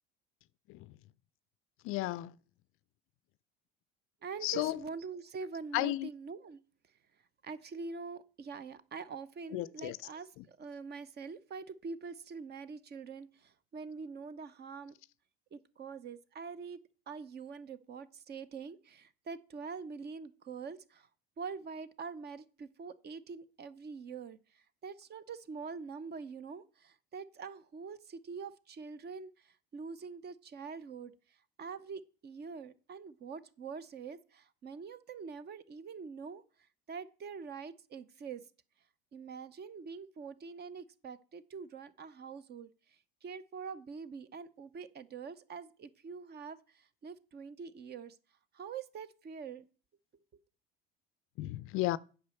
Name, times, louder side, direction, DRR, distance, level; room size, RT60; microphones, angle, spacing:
voice 1, 1.8-2.3 4.4-4.8 5.7-6.1 9.5-10.0 51.4-52.0, left 17 dB, 45° left, 0.4 m, -33 dB
voice 2, 4.2-6.6 7.4-15.0 15.5-16.8 17.1-21.1 21.4-36.4 36.9-38.4 39.1-48.2 48.5-49.6, right 5 dB, 35° right, 0.8 m, -45 dB
9.2 x 5.1 x 7.0 m
hypercardioid pair, 65°, 30 cm